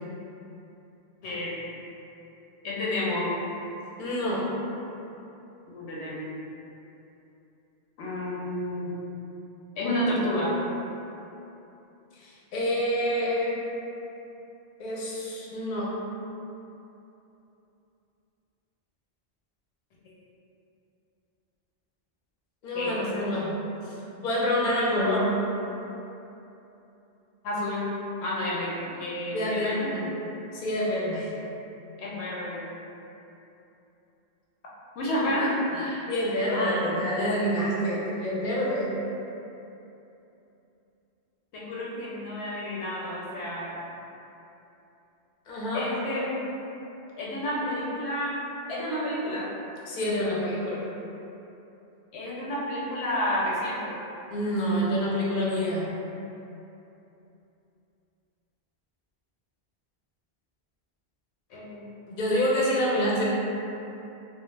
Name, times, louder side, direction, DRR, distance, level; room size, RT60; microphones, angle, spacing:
voice 1, 1.2-1.6 2.6-3.3 5.7-6.3 8.0-8.9 9.8-10.6 22.7-23.4 27.4-27.9 28.2-29.9 32.0-32.6 35.0-36.1 36.5-36.9 41.5-43.7 45.7-46.4 47.2-48.4 48.7-49.5 52.1-53.9 61.5-61.8, left 1 dB, 85° left, -6 dB, 0.9 m, -30 dB
voice 2, 4.0-4.4 12.2-13.6 14.8-15.9 22.6-23.5 23.8-23.9 24.2-25.4 29.3-30.1 30.5-31.3 36.1-38.9 45.5-45.9 49.9-50.8 54.3-55.9 62.1-63.2, equal, 60° left, -6 dB, 0.6 m, -27 dB
2.4 x 2.0 x 3.0 m, 2.9 s
omnidirectional pair, 1.1 m